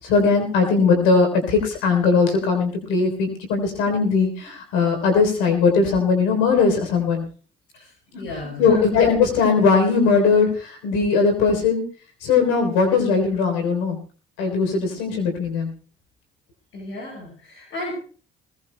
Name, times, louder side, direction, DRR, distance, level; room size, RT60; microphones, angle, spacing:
voice 1, 0.0-7.2 8.1-8.2 8.6-11.8 12.2-14.0 14.4-15.7, left 5 dB, 85° left, 5 dB, 3.5 m, -19 dB
voice 2, 8.2-8.8 16.7-17.9, left 2 dB, 70° left, -2 dB, 7.2 m, -33 dB
20.5 x 20.0 x 2.2 m, 0.40 s
supercardioid pair, 60°, 21 cm